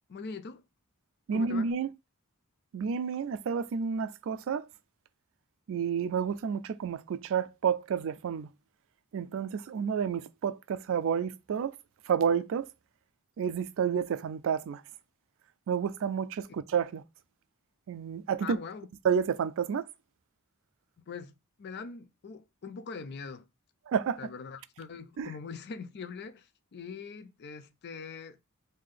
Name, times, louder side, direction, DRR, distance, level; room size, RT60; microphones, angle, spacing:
voice 1, 0.1-0.6 1.3-1.7 18.4-18.9 21.1-23.5 24.2-28.4, left 5 dB, 50° left, 0.4 m, -42 dB
voice 2, 1.3-1.9 2.7-4.7 5.7-8.5 9.1-11.7 12.1-12.7 13.4-14.8 15.7-17.0 17.9-18.6 19.0-19.9 23.9-24.2 25.2-25.3, right 7 dB, 60° right, 0.3 m, -30 dB
3.4 x 2.7 x 3.6 m
head